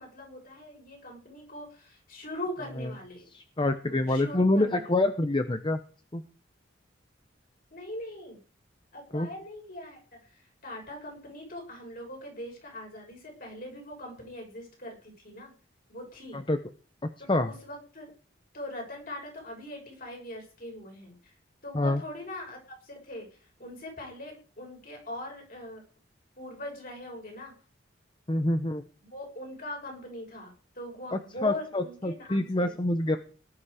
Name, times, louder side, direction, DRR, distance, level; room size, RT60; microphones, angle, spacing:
voice 1, 0.0-3.3 3.9-4.9 7.7-8.4 8.9-10.0 10.3-15.5 15.9-16.4 17.4-18.1 18.5-21.1 21.6-22.6 22.8-23.3 23.6-25.8 26.4-27.5 29.0-30.5 30.7-32.8 33.1-33.2, left 1 dB, 45° left, 1 dB, 6.3 m, -41 dB
voice 2, 3.3-5.8 6.1-6.2 9.1-9.3 16.3-16.6 17.3-17.5 21.7-22.0 28.3-28.8 31.1-33.2, left 2 dB, 25° left, 9 dB, 0.8 m, -26 dB
18.5 x 11.5 x 5.0 m, 0.41 s
head